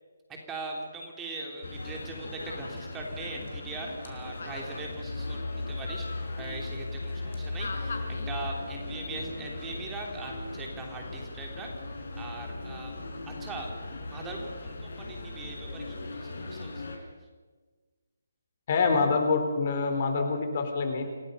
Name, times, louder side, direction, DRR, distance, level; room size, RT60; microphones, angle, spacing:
voice 1, 0.3-11.7 12.2-13.0 13.3-13.7 14.0-16.8, right 3 dB, 15° right, 0 dB, 3.2 m, -41 dB
sound 1, 1.6-17.0, left 2 dB, 60° left, 4.4 m, -37 dB
voice 2, 18.7-21.0, left 4 dB, 40° left, 5 dB, 4.2 m, -26 dB
27.5 x 18.5 x 5.6 m, 1.4 s
figure-of-eight pair, 145°, 0 cm